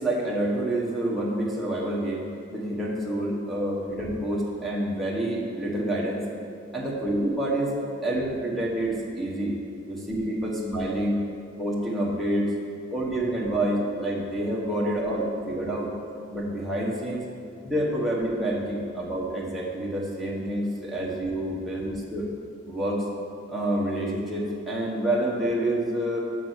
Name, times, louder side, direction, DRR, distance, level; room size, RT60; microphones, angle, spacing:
voice 1, 0.0-6.3 6.7-7.8 8.0-9.5 9.9-11.2 11.6-12.5 12.9-15.9 16.3-17.2 17.6-22.3 22.7-23.1 23.5-26.2, right 1 dB, ahead, -4 dB, 1.1 m, -28 dB
6.8 x 6.0 x 6.3 m, 2.6 s
head